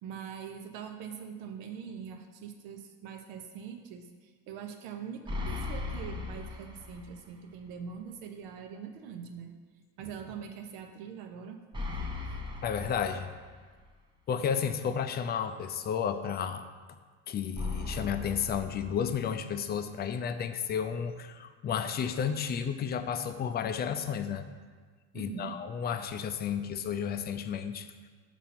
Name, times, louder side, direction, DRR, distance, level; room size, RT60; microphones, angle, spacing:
voice 1, 0.0-9.5 10.0-11.6 12.2-12.3 25.1-25.5, right 7 dB, 70° right, 5 dB, 1.0 m, -43 dB
sound 1, 5.3-7.3 7.6-7.7 11.7-13.7 17.5-19.5, left 3 dB, 15° right, 0.8 m, -38 dB
voice 2, 12.6-13.3 14.3-16.7 17.3-24.4 25.1-27.9, left 7 dB, 30° left, 9 dB, 0.5 m, -32 dB
7.1 x 4.3 x 6.0 m, 1.5 s
supercardioid pair, 110°, 33 cm